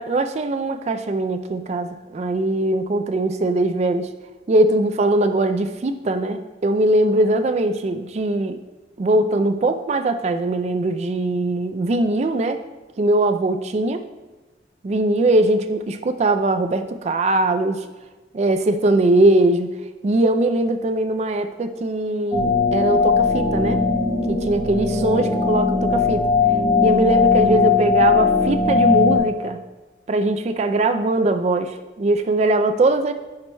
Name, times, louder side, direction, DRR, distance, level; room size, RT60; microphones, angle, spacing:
voice 1, 0.0-4.1 4.5-8.6 9.0-12.6 13.0-14.0 14.8-17.8 18.3-19.7 20.0-23.8 24.3-26.3 26.8-29.6 30.1-33.1, right 2 dB, 35° right, 8 dB, 0.3 m, -21 dB
sound 1, 22.3-29.2, left 5 dB, 25° left, 1.2 m, -19 dB
9.3 x 4.6 x 2.2 m, 1.2 s
head